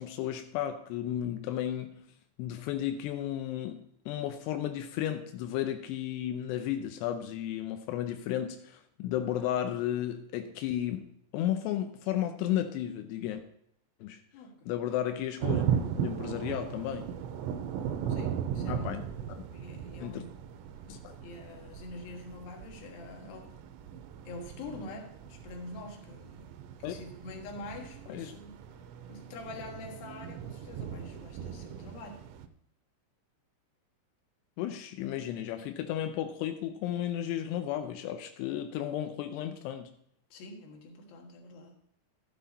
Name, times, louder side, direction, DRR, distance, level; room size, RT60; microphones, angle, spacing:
voice 1, 0.0-2.0 2.4-3.8 4.1-13.4 14.0-14.2 14.7-15.6 15.9-17.1 18.7-19.0 19.3-19.5 20.0-20.2 20.9-21.2 26.8-26.9 28.1-28.4 34.6-39.9, left 11 dB, 85° left, 7 dB, 2.4 m, -33 dB
voice 2, 14.3-14.7 18.1-19.0 19.5-20.4 21.2-23.6 24.2-26.5 26.8-28.6 29.1-32.2 40.3-41.7, left 2 dB, 60° left, 2 dB, 2.8 m, -45 dB
sound 1, 15.4-32.5, right 8 dB, 80° right, 2.7 m, -37 dB
13.0 x 7.7 x 4.1 m, 0.71 s
omnidirectional pair, 5.6 m